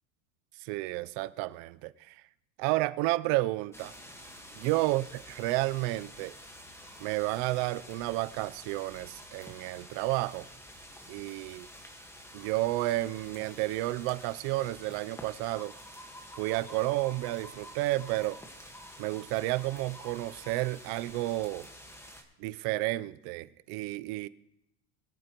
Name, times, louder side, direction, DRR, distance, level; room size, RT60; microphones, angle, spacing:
voice 1, 0.6-2.2 2.6-3.9 4.6-6.4 7.0-10.5 11.1-11.7 12.3-15.7 16.4-18.4 19.0-21.7 22.4-24.3, right 18 dB, 55° right, 0.6 m, -31 dB
sound 1, 3.7-22.2, equal, 5° left, 1.5 m, -49 dB
22.0 x 8.6 x 3.0 m
supercardioid pair, 125°, 43 cm